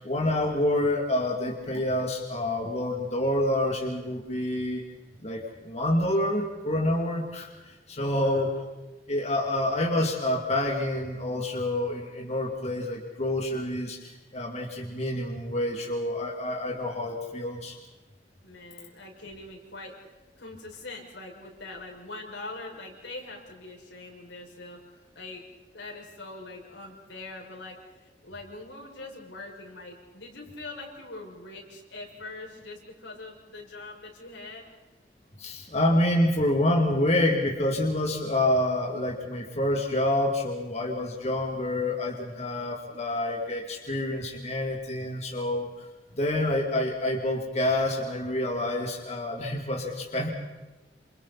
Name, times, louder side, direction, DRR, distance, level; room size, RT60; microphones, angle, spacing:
voice 1, 0.0-4.8 5.2-7.5 7.9-8.5 9.1-17.8 35.4-45.9 46.2-50.3, left 1 dB, 40° left, 0 dB, 2.6 m, -27 dB
voice 2, 8.1-8.6 18.4-20.0 20.4-24.8 25.1-34.7, left 2 dB, 90° left, -1 dB, 6.2 m, -43 dB
28.5 x 28.0 x 4.3 m, 1.1 s
head